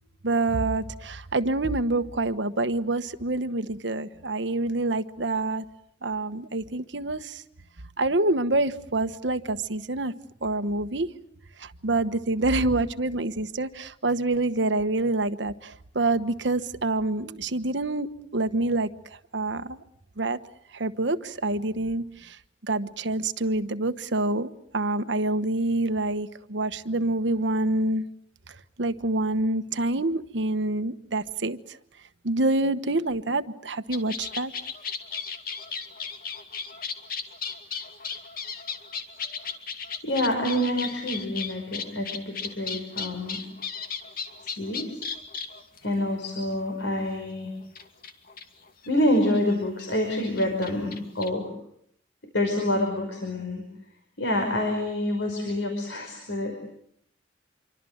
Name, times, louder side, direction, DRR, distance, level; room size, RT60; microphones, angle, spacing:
voice 1, 0.2-5.6 6.0-7.4 8.0-10.1 10.4-11.1 11.6-18.9 19.3-19.8 20.2-20.4 20.7-22.4 22.6-28.0 28.8-31.8 32.2-34.5, right 2 dB, 70° right, 11 dB, 1.2 m, -27 dB
sound 1, 33.9-46.1 47.2-47.3 47.8-49.2 49.5-49.6 49.8-51.3, left 6 dB, 50° left, 2.4 m, -35 dB
voice 2, 40.0-43.4 44.4-45.0 45.8-47.5 48.9-51.5 52.3-53.6 54.2-56.6, left 1 dB, 75° left, 3 dB, 5.3 m, -27 dB
27.0 x 24.5 x 8.0 m, 0.72 s
head